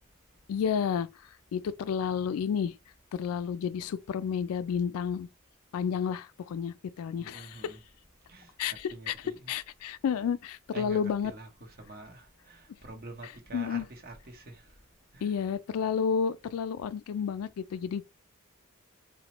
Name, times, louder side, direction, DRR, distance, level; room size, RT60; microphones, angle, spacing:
voice 1, 0.5-1.1 1.5-2.8 3.1-5.3 5.7-7.7 8.6-9.1 9.5-11.3 13.5-13.9 15.2-18.0, left 7 dB, 80° left, 0.3 m, -31 dB
voice 2, 7.2-7.8 8.3-9.5 10.7-14.8 15.1-15.3, right 2 dB, 45° right, 0.8 m, -47 dB
4.1 x 2.1 x 2.9 m
head